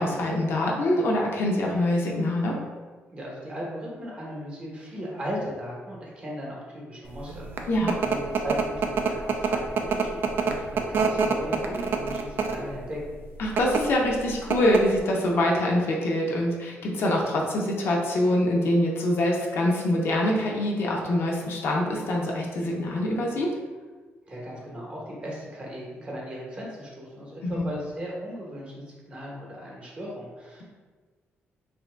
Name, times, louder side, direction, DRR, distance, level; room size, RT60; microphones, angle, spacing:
voice 1, 0.0-2.5 7.7-8.0 13.4-23.5 27.4-27.7, left 1 dB, 65° left, -2 dB, 0.6 m, -24 dB
voice 2, 3.1-7.7 8.0-13.1 24.3-30.6, equal, 25° right, -4 dB, 0.9 m, -37 dB
sound 1, 7.3-12.7 13.4-13.8 14.2-14.3 14.5-15.0, right 5 dB, 55° right, 0.3 m, -25 dB
2.8 x 2.6 x 3.3 m, 1.4 s
cardioid pair, 125°, 4 cm